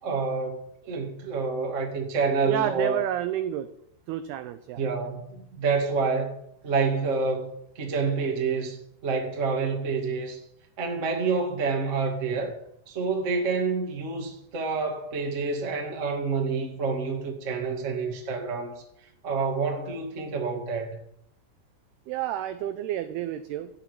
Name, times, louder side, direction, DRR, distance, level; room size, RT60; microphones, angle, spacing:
voice 1, 0.0-3.0 4.8-6.3 6.6-7.5 7.7-8.8 9.0-10.4 10.8-12.5 12.9-18.8 19.2-21.0, right 4 dB, 40° right, 1 dB, 1.0 m, -28 dB
voice 2, 2.5-3.7 4.1-4.8 22.1-23.7, right 11 dB, 85° right, 10 dB, 2.2 m, -30 dB
16.0 x 6.0 x 9.0 m, 0.74 s
omnidirectional pair, 5.4 m